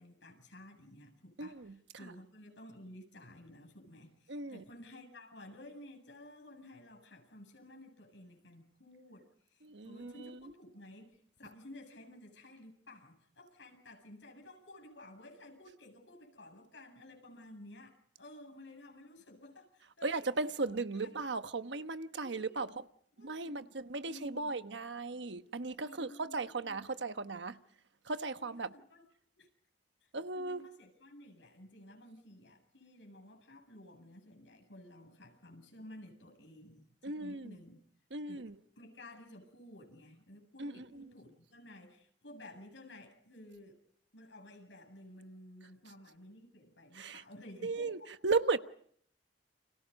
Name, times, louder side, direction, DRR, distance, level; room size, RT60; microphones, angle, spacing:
voice 1, 0.0-20.2 20.6-20.7 21.0-21.1 22.1-22.7 23.2-23.7 24.0-24.5 25.8-26.8 28.4-29.0 29.4-29.5 30.0-37.8 38.3-38.4 38.8-43.8 44.1-48.1, left 1 dB, 85° left, 7.9 m, -54 dB
voice 2, 1.4-1.8 2.0-2.1 4.3-4.6 9.6-10.5 20.0-22.9 23.2-27.6 28.0-28.7 30.1-30.7 37.0-37.6 38.1-38.6 40.6-41.1 46.9-47.2 47.6-48.6, right 3 dB, 75° right, 1.2 m, -36 dB
30.0 x 27.5 x 5.4 m
head